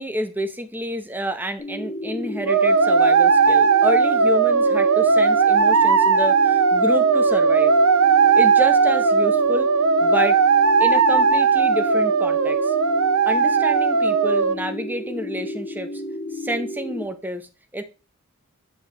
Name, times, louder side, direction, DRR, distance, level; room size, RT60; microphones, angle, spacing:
voice 1, 0.0-7.7 8.4-9.7 10.0-10.4 10.8-12.7 13.3-16.0 16.3-17.8, equal, 10° right, 7 dB, 0.8 m, -29 dB
sound 1, 1.6-17.1, left 1 dB, 25° left, 2.3 m, -32 dB
sound 2, 2.5-14.5, right 5 dB, 75° right, 0.7 m, -17 dB
8.5 x 4.7 x 3.9 m, 0.33 s
head